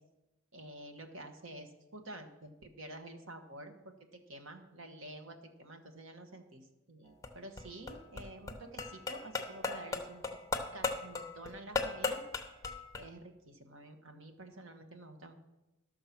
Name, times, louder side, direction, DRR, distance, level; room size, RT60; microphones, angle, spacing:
voice 1, 0.5-10.2 10.7-12.2 12.9-15.3, right 1 dB, 65° right, 6 dB, 1.3 m, -49 dB
sound 1, 7.1-13.1, left 4 dB, 15° left, 0.8 m, -37 dB
12.5 x 6.5 x 5.9 m, 0.99 s
head